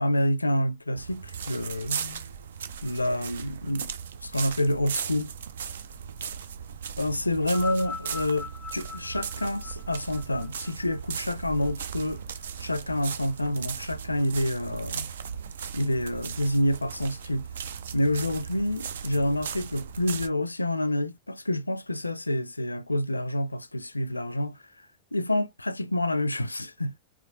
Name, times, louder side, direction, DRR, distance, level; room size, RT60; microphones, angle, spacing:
voice 1, 0.0-2.3 2.8-3.9 4.2-5.3 7.0-12.2 12.6-15.1 15.7-17.5 17.9-24.6 25.1-27.0, left 1 dB, 85° left, 0.4 m, -28 dB
sound 1, 1.0-20.3, right 7 dB, 65° right, 0.5 m, -37 dB
sound 2, 7.4-11.9 12.8-12.9, left 5 dB, 15° left, 0.5 m, -41 dB
4.9 x 2.8 x 2.8 m
figure-of-eight pair, 90°, 0 cm